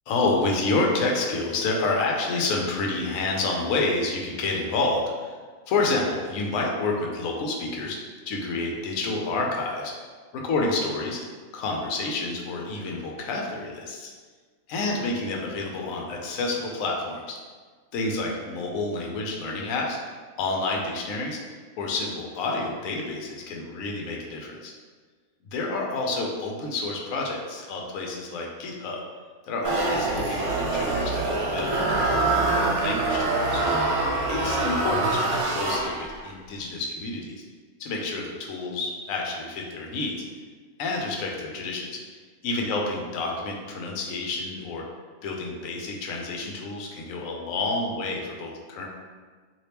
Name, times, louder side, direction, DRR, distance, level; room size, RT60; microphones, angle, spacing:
voice 1, 0.1-5.4 5.7-9.9 10.3-11.2 11.5-14.1 14.7-17.4 17.9-20.0 20.4-21.4 21.8-24.7 25.4-29.0 29.4-33.6 34.3-37.4 37.8-40.2 40.8-42.1 42.4-44.8 45.2-48.9, left 3 dB, 75° left, 0 dB, 1.0 m, -29 dB
sound 1, 29.6-36.3, right 2 dB, 80° right, 1.1 m, -25 dB
3.3 x 2.7 x 2.9 m, 1.5 s
omnidirectional pair, 1.5 m